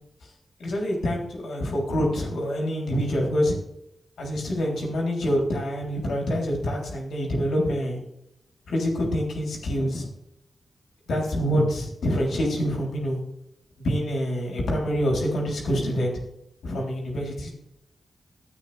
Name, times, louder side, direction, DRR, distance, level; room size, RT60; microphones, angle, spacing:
voice 1, 0.6-3.5 4.2-8.0 8.7-10.1 11.1-13.2 13.8-16.1 16.6-17.5, equal, 90° left, -1 dB, 3.5 m, -26 dB
15.0 x 8.6 x 3.4 m, 0.80 s
cardioid pair, 60°, 0 cm